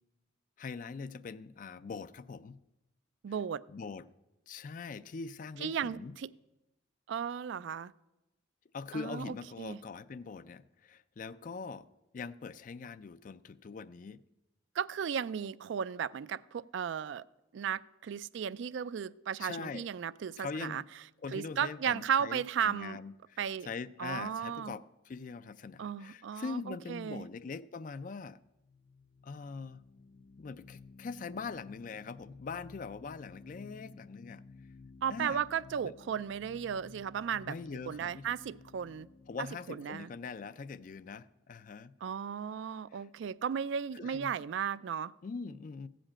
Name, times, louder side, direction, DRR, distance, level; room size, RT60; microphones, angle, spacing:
voice 1, 0.6-2.6 3.7-4.0 4.5-6.2 8.7-11.9 12.1-14.2 19.4-19.9 20.4-20.8 21.2-28.4 29.2-29.8 30.4-34.4 35.1-35.4 35.8-35.9 37.5-38.4 39.3-41.9 42.9-43.1 43.9-44.3 45.2-45.9, left 4 dB, 40° left, 0.3 m, -42 dB
voice 2, 3.2-3.6 5.6-6.3 7.1-7.9 8.9-9.8 14.8-17.2 17.5-20.8 21.3-23.0 23.4-23.7 24.0-24.7 25.8-27.2 35.0-37.5 37.9-39.1 39.4-40.1 42.0-45.1, right 8 dB, 65° right, 0.3 m, -35 dB
sound 1, 28.3-41.4, left 4 dB, 85° left, 1.6 m, -55 dB
15.0 x 5.1 x 8.5 m
head